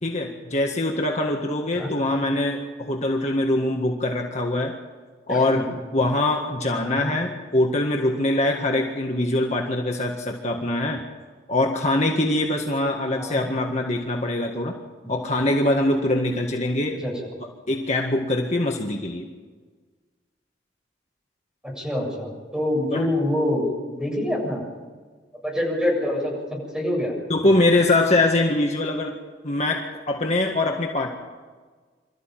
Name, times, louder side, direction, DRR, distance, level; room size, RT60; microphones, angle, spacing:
voice 1, 0.0-4.7 5.3-11.0 11.5-14.7 15.1-17.0 17.7-19.3 22.9-23.0 27.3-29.2 29.4-31.1, left 2 dB, 40° left, 1 dB, 1.8 m, -23 dB
voice 2, 5.3-5.6 6.8-7.1 13.2-13.4 15.0-15.1 17.0-17.1 21.6-23.6 23.9-24.6 25.4-26.3 26.7-27.1, left 1 dB, 5° right, -1 dB, 7.5 m, -26 dB
26.0 x 14.0 x 9.2 m, 1.4 s
head